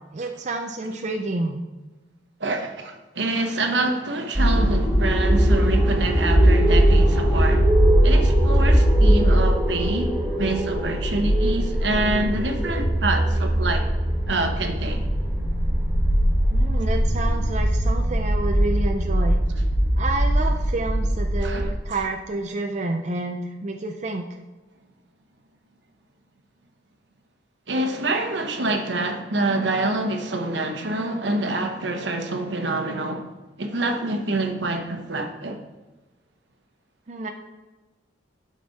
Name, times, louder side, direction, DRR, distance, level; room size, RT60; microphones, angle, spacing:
voice 1, 0.1-1.6 16.5-19.4 20.0-24.3 37.1-37.3, right 2 dB, 40° right, 0.5 m, -29 dB
voice 2, 2.4-7.7 8.0-13.9 14.3-15.0 21.4-21.7 27.7-33.3 33.6-35.6, right 2 dB, 80° right, 1.0 m, -26 dB
sound 1, 4.3-21.7, equal, 15° right, 3.0 m, -20 dB
11.0 x 5.2 x 4.1 m
head